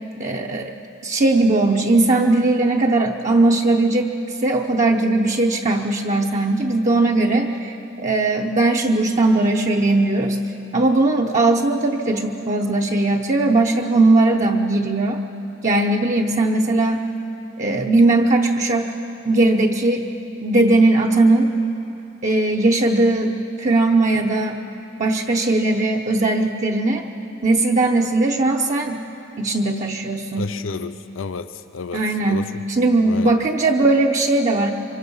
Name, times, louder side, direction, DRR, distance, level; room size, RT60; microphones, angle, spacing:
voice 1, 0.2-0.7 1.0-10.4 10.7-15.2 15.6-17.0 17.6-18.9 19.3-20.1 20.4-21.5 22.2-23.3 23.6-24.6 25.0-27.0 27.4-29.0 29.4-30.5 31.9-34.7, right 2 dB, 40° right, 0 dB, 0.8 m, -19 dB
voice 2, 30.4-32.5 33.0-33.4, left 4 dB, 80° left, 11 dB, 0.6 m, -31 dB
25.0 x 24.5 x 5.5 m, 3.0 s
head